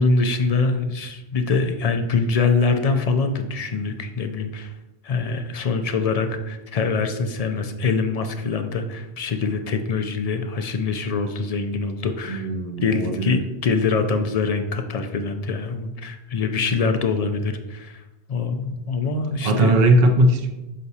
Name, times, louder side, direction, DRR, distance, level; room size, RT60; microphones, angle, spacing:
voice 1, 0.0-4.7 5.0-12.5 12.8-18.0 18.3-19.7, left 4 dB, 50° left, 7 dB, 0.4 m, -24 dB
voice 2, 12.3-13.3 19.4-20.5, right 1 dB, 50° right, 4 dB, 0.6 m, -18 dB
6.3 x 5.8 x 2.7 m, 1.0 s
omnidirectional pair, 1.1 m